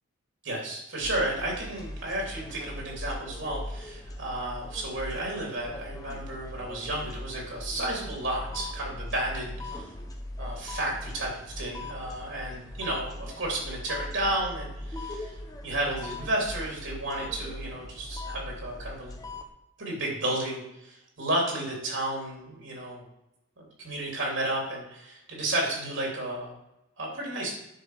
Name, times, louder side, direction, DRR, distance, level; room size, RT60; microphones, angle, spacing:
voice 1, 0.4-9.9 10.4-15.3 15.6-19.2 19.8-23.0 23.6-26.6 27.0-27.5, right 1 dB, 65° right, -2 dB, 3.2 m, -32 dB
sound 1, 1.0-19.4, left 1 dB, 15° left, 1.0 m, -40 dB
10.5 x 6.8 x 4.9 m, 0.88 s
head